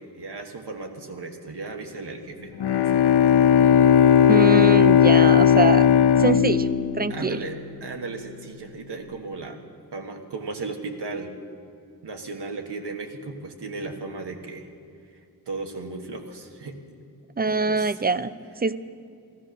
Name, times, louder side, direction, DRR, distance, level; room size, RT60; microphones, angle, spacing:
voice 1, 0.0-3.0 7.1-9.6 9.9-11.3 12.0-14.6 15.5-16.8 17.5-18.0, right 3 dB, 85° right, 4 dB, 1.5 m, -36 dB
Bowed string instrument, 2.6-7.8, left 8 dB, 75° left, 0.6 m, -17 dB
voice 2, 4.3-5.9 6.2-6.7 7.0-7.4 17.4-18.3 18.6-18.8, right 4 dB, 25° right, 14 dB, 0.5 m, -23 dB
15.0 x 14.5 x 6.4 m, 2.4 s
wide cardioid pair, 80°, 40 cm